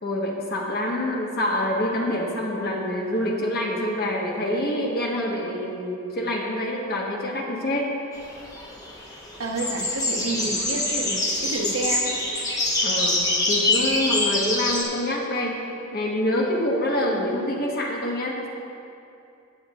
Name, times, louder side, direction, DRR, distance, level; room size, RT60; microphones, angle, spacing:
voice 1, 0.0-7.9 12.8-13.2 13.5-15.6 15.9-18.5, left 1 dB, 50° left, -2 dB, 1.4 m, -26 dB
sound 1, 8.1-14.8, left 2 dB, 15° left, 1.1 m, -25 dB
voice 2, 9.4-12.2, right 2 dB, 85° right, 0 dB, 1.3 m, -29 dB
16.0 x 8.8 x 2.5 m, 2.6 s
head